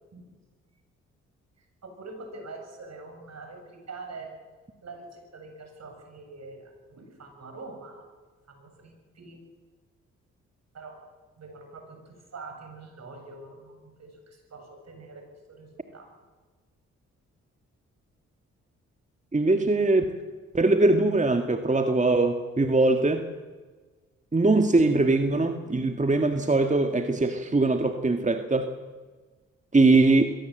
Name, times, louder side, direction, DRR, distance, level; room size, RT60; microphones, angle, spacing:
voice 1, 1.8-4.3 4.8-8.1 8.5-9.4 10.7-11.0 11.3-16.1, right 3 dB, 55° right, 4 dB, 7.1 m, -44 dB
voice 2, 19.3-20.1 20.5-23.3 24.3-28.7 29.7-30.3, right 2 dB, 25° right, 6 dB, 1.8 m, -22 dB
22.0 x 17.5 x 7.9 m, 1.3 s
supercardioid pair, 50°, 31 cm